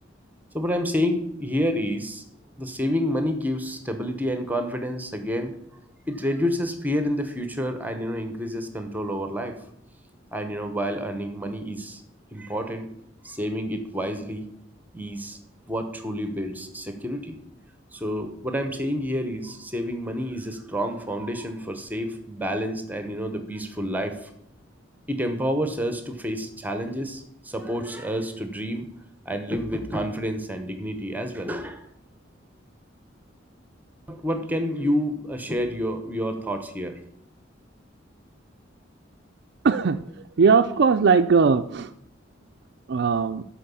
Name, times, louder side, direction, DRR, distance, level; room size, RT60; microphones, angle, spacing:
voice 1, 0.5-2.3 2.6-5.5 6.1-9.5 10.3-12.0 12.3-12.9 13.2-14.4 14.9-15.4 15.7-17.4 17.9-24.3 25.1-28.9 29.2-31.9 34.1-37.0, equal, 10° right, 7 dB, 1.0 m, -29 dB
voice 2, 39.6-40.0 40.4-41.9 42.9-43.4, right 5 dB, 60° right, 8 dB, 0.4 m, -19 dB
12.0 x 4.9 x 7.0 m, 0.73 s
head